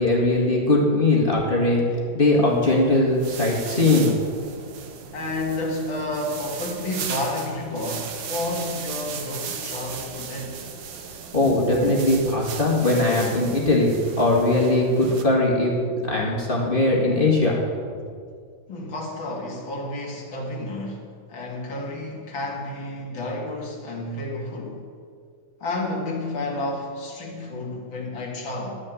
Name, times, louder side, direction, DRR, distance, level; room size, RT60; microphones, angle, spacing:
voice 1, 0.0-1.8 2.1-4.1 11.3-15.7 16.0-17.6 17.9-18.0, left 2 dB, 25° left, -3 dB, 2.1 m, -20 dB
sound 1, 2.2-15.2, right 6 dB, 65° right, 1.7 m, -37 dB
voice 2, 5.1-10.6 18.7-24.8 25.6-28.8, left 1 dB, 75° left, -1 dB, 2.8 m, -31 dB
13.0 x 6.6 x 9.0 m, 2.1 s
omnidirectional pair, 2.2 m